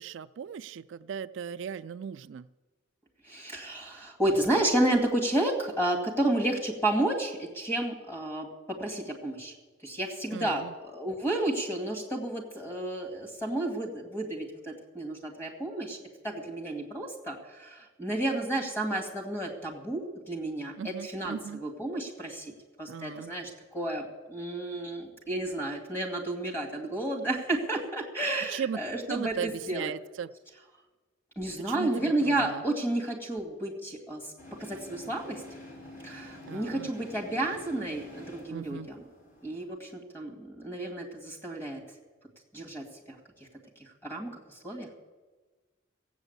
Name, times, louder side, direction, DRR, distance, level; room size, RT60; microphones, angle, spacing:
voice 1, 0.0-2.5 10.3-10.7 20.8-21.6 22.9-23.3 28.5-28.8 29.1-30.3 31.6-32.6 36.5-36.9 38.5-38.9, right 7 dB, 70° right, 12 dB, 0.3 m, -37 dB
voice 2, 3.3-8.5 8.8-9.5 9.8-16.0 16.2-22.5 22.8-29.9 31.4-34.3 34.6-35.4 36.0-39.0 39.4-41.8 42.5-43.2 43.8-45.0, right 1 dB, 10° left, 2 dB, 2.2 m, -31 dB
sound 1, 34.4-39.6, left 1 dB, 40° left, 4.8 m, -48 dB
16.0 x 8.1 x 8.1 m, 1.3 s
head